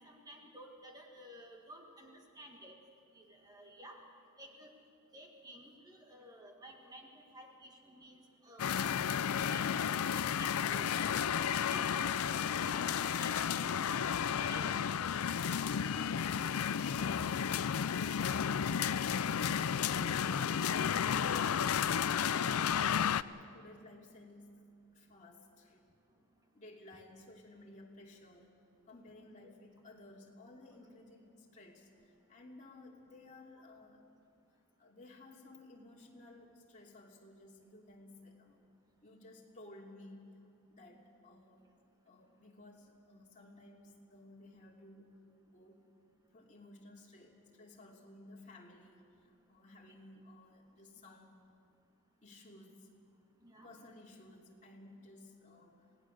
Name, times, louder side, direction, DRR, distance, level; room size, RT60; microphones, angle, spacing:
voice 1, 0.0-2.8 3.1-4.0 4.4-4.7 5.1-9.1 9.5-9.6 10.1-11.1 11.5-14.7 29.4-29.5 40.9-41.0 53.4-53.9, equal, 20° right, 1 dB, 1.7 m, -53 dB
sound 1, 8.6-23.2, left 8 dB, 85° left, 0.5 m, -32 dB
voice 2, 16.8-17.4 17.9-18.1 18.6-18.9 19.3-25.8 26.5-28.5 28.9-34.1 34.8-38.6 39.0-40.4 40.7-41.6 42.0-45.9 46.3-51.4 52.2-52.9 53.6-55.9, left 2 dB, 35° left, -2 dB, 2.9 m, -56 dB
26.5 x 18.5 x 6.5 m, 2.4 s
head